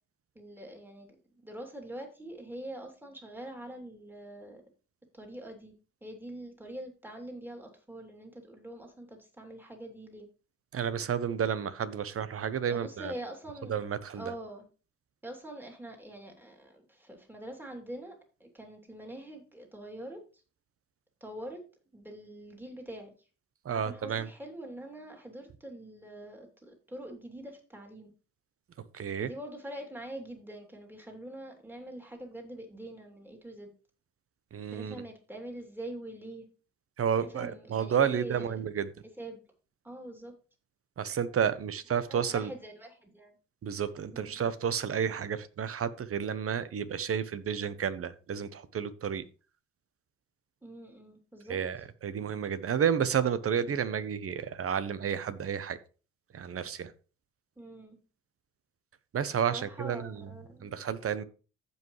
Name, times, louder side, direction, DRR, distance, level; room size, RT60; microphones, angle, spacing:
voice 1, 0.3-1.2 1.4-4.6 5.1-5.7 6.0-10.3 12.7-13.8 14.1-14.7 15.2-20.2 21.2-21.6 21.9-23.1 23.7-28.1 29.2-33.7 34.7-36.5 37.2-38.5 39.2-39.4 39.8-40.3 42.1-43.4 44.1-44.4 50.6-51.6 57.6-58.0 59.5-60.8, right 1 dB, 5° right, 3.2 m, -44 dB
voice 2, 10.7-13.1 13.7-14.2 23.6-24.3 28.9-29.3 34.5-35.0 37.0-38.9 41.0-42.5 43.6-49.2 51.5-55.8 56.3-56.9 59.1-60.3 60.6-61.2, right 8 dB, 50° right, 1.0 m, -31 dB
15.0 x 5.5 x 3.2 m
cardioid pair, 90°, 30 cm